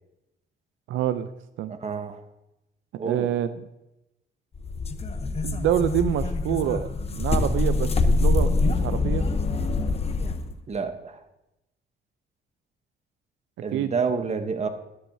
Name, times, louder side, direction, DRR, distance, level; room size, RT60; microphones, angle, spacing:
voice 1, 0.9-1.3 1.6-1.7 3.0-3.6 5.4-6.9 7.1-9.2 13.7-13.9, right 11 dB, 80° right, 11 dB, 0.5 m, -26 dB
voice 2, 1.7-2.2 3.0-3.3 10.7-11.2 13.6-14.7, right 5 dB, 35° right, 8 dB, 1.0 m, -29 dB
sound 1, 4.5-10.5, left 3 dB, 30° left, 0.8 m, -24 dB
12.5 x 10.0 x 2.7 m, 0.93 s
cardioid pair, 90°, 20 cm